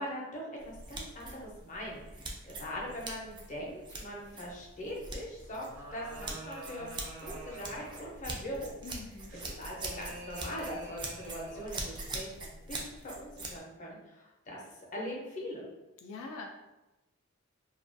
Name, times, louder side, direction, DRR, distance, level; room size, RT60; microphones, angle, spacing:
voice 1, 0.0-5.7 5.9-6.9 7.2-8.8 9.3-14.6 14.9-15.7, equal, 40° left, -3 dB, 0.6 m, -41 dB
sound 1, 0.6-13.6, right 2 dB, 20° right, 0.3 m, -43 dB
sound 2, 5.4-8.3 9.3-11.9, right 1 dB, 80° right, 0.7 m, -47 dB
voice 2, 8.8-9.3 16.0-16.5, left 3 dB, 85° left, 1 dB, 0.3 m, -43 dB
2.3 x 2.2 x 2.5 m, 1.0 s
head